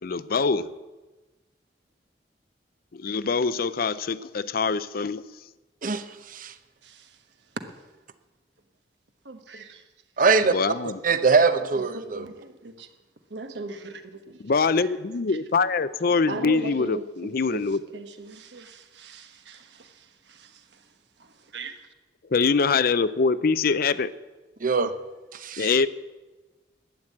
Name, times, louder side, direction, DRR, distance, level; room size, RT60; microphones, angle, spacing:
voice 1, 0.0-0.7 2.9-5.2 10.4-11.0 14.4-17.8 22.3-24.1 25.6-25.9, left 4 dB, 55° left, 0.5 m, -24 dB
voice 2, 5.8-6.5 10.2-10.5 11.0-12.2 24.6-24.9 25.3-25.7, right 4 dB, 50° right, 0.8 m, -22 dB
voice 3, 6.8-7.2 9.2-9.9 11.5-11.7 11.9-12.9 13.3-14.4 14.8-14.9 16.3-20.9 21.2-21.8, right 3 dB, 75° right, 1.3 m, -40 dB
12.0 x 9.3 x 8.5 m
head